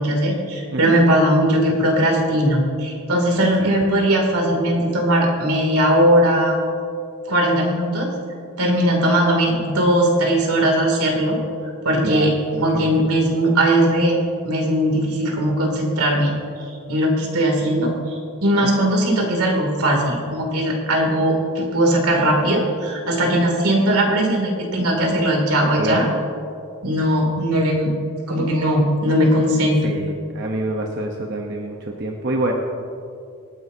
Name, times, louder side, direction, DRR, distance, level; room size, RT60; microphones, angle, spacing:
voice 1, 0.0-6.6 7.3-8.1 8.6-11.4 11.8-14.2 14.4-16.3 16.6-26.0 26.8-27.9 28.3-29.9, right 1 dB, 85° right, 0 dB, 2.8 m, -19 dB
voice 2, 12.0-13.1 18.6-18.8 25.8-26.0 29.8-32.5, right 2 dB, 50° right, 1 dB, 0.9 m, -27 dB
25.5 x 9.6 x 2.8 m, 2.5 s
head